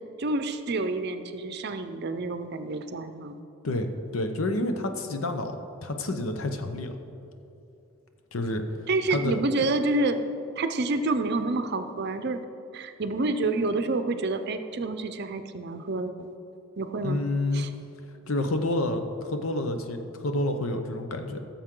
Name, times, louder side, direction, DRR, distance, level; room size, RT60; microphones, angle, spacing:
voice 1, 0.2-3.4 8.9-10.2 10.6-12.4 12.7-16.3 16.8-17.2 17.5-17.7, right 2 dB, 50° right, 9 dB, 0.6 m, -28 dB
voice 2, 3.6-5.6 5.8-6.9 8.3-8.7 9.1-9.4 17.0-17.7 18.3-21.4, left 2 dB, 80° left, 7 dB, 0.8 m, -29 dB
16.0 x 7.1 x 3.8 m, 2.8 s
head